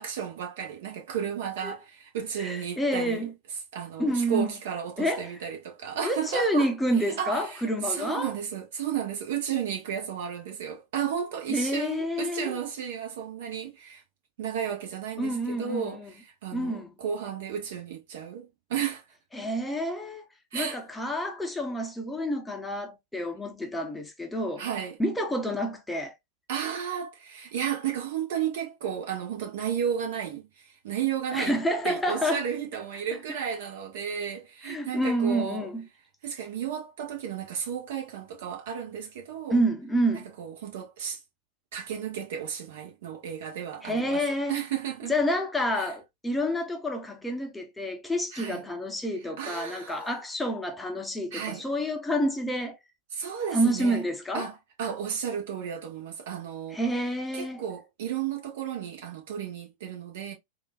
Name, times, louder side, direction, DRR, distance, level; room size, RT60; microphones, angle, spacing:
voice 1, 0.0-3.3 3.7-6.7 7.0-14.0 14.4-19.0 20.5-20.8 24.6-25.0 26.5-35.7 36.2-39.6 40.1-41.2 41.7-44.2 44.5-45.2 45.7-45.9 48.3-48.6 49.4-50.2 51.3-51.6 53.1-54.0 54.3-56.8 57.3-60.3, right 8 dB, 55° right, 1.1 m, -33 dB
voice 2, 2.4-3.3 4.0-4.5 5.0-5.3 6.0-8.3 11.5-12.6 15.2-16.1 16.5-16.9 19.3-20.2 20.5-24.6 25.0-26.1 31.3-32.4 34.6-35.9 39.5-40.3 43.8-44.5 45.1-52.8 53.5-54.5 56.7-57.6, equal, 5° left, 0.7 m, -28 dB
3.7 x 2.5 x 2.3 m
figure-of-eight pair, 90°, 0 cm